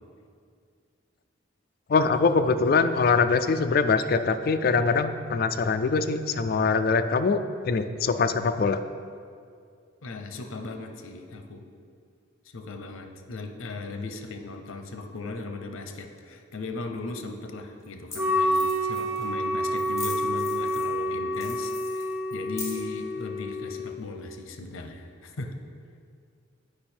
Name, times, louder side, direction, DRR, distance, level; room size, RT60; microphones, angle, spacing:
voice 1, 1.9-8.8, left 4 dB, 45° left, 9 dB, 0.3 m, -23 dB
voice 2, 10.0-11.6 12.4-25.6, left 3 dB, 80° left, 5 dB, 0.7 m, -38 dB
sound 1, 17.0-17.1 17.8-17.9 18.1-18.2 18.5-19.3 19.7-21.0 21.3-23.0, left 3 dB, 15° left, 1.2 m, -40 dB
Wind instrument woodwind instrument, 18.1-24.0, equal, 5° right, 0.6 m, -28 dB
8.6 x 4.9 x 4.4 m, 2.2 s
head